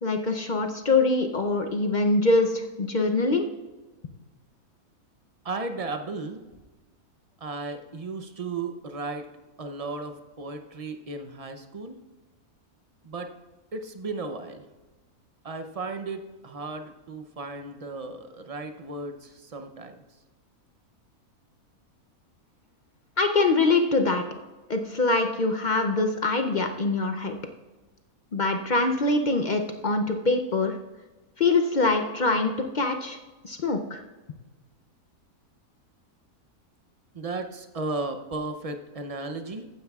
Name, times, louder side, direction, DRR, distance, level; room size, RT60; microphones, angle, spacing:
voice 1, 0.0-3.5 23.2-24.2 24.7-27.4 28.3-30.8 31.4-33.2 33.4-34.0, left 3 dB, 55° left, 5 dB, 0.5 m, -24 dB
voice 2, 5.4-6.4 7.4-9.3 9.6-12.0 13.0-13.3 13.7-14.7 15.4-20.0 37.1-39.7, right 3 dB, 55° right, 6 dB, 0.4 m, -35 dB
14.5 x 9.4 x 2.4 m, 1.2 s
omnidirectional pair, 1.6 m